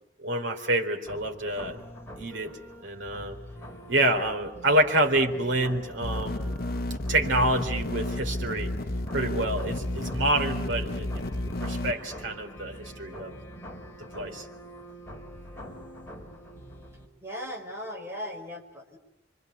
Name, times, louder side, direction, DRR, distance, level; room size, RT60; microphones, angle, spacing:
voice 1, 0.2-1.8 2.2-2.5 2.8-3.4 3.9-6.6 7.1-8.7 9.1-11.2 11.6-13.3 14.0-14.4, right 1 dB, 70° right, 4 dB, 3.9 m, -27 dB
sound 1, 1.1-17.1, equal, 15° left, 4.5 m, -45 dB
sound 2, 6.0-11.9, left 1 dB, 50° left, 1.0 m, -31 dB
voice 2, 17.2-19.0, equal, 15° right, 1 dB, 5.3 m, -38 dB
27.0 x 25.5 x 8.3 m, 0.77 s
head